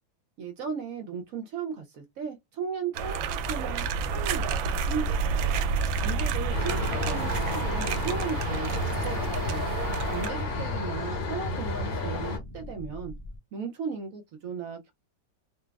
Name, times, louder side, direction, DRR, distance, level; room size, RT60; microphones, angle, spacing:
voice 1, 0.4-3.8 4.1-5.4 6.0-9.7 10.1-13.1 13.5-14.9, right 6 dB, 75° right, 0.7 m, -36 dB
sound 1, 2.9-10.3, right 5 dB, 90° right, 1.4 m, -29 dB
sound 2, 3.4-13.4, left 1 dB, 30° left, 0.8 m, -43 dB
sound 3, 6.5-12.4, left 2 dB, 75° left, 2.3 m, -31 dB
4.3 x 2.2 x 2.3 m
omnidirectional pair, 2.1 m